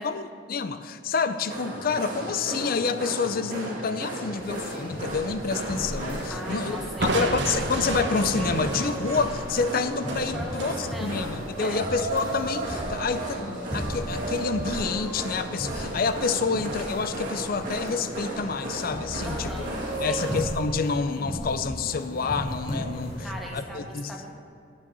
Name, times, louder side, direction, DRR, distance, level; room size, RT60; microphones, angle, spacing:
voice 1, 0.0-6.8 7.0-19.5 20.0-23.2 23.5-24.1, left 5 dB, 50° left, 12 dB, 0.5 m, -28 dB
sound 1, 1.5-20.4, right 2 dB, 45° right, 2.4 m, -34 dB
sound 2, 4.4-23.5, equal, 30° left, 2.1 m, -37 dB
voice 2, 6.3-7.3 10.3-11.2 11.6-11.8 19.2-19.8 20.0-20.3 22.9-24.3, equal, ahead, -2 dB, 1.4 m, -40 dB
Crushing, 7.0-10.8, right 2 dB, 65° right, 1.0 m, -31 dB
9.4 x 6.3 x 7.8 m, 2.3 s
head